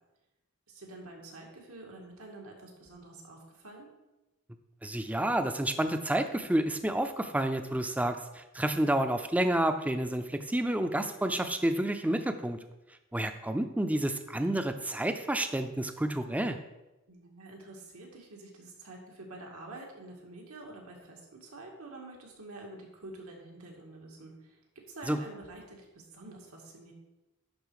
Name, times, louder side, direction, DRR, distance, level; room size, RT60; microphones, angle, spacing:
voice 1, 0.7-3.9 17.1-24.6 24.9-26.9, right 2 dB, 90° right, 0 dB, 1.9 m, -48 dB
voice 2, 4.8-12.6 13.1-16.6 25.1-25.2, right 1 dB, 5° right, 8 dB, 0.4 m, -29 dB
10.5 x 4.1 x 4.7 m, 1.0 s
head